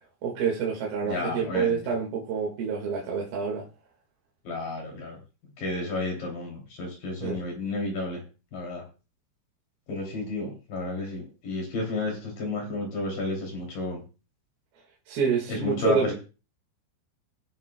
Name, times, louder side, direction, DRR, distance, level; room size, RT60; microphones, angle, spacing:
voice 1, 0.2-3.6 7.2-7.4 15.1-16.1, right 6 dB, 60° right, -2 dB, 3.1 m, -27 dB
voice 2, 1.0-1.8 4.4-5.2 5.6-8.2 8.5-8.8 9.9-14.0 15.5-16.1, left 2 dB, 45° left, 1 dB, 4.0 m, -31 dB
22.0 x 7.4 x 2.2 m, 0.33 s
omnidirectional pair, 5.8 m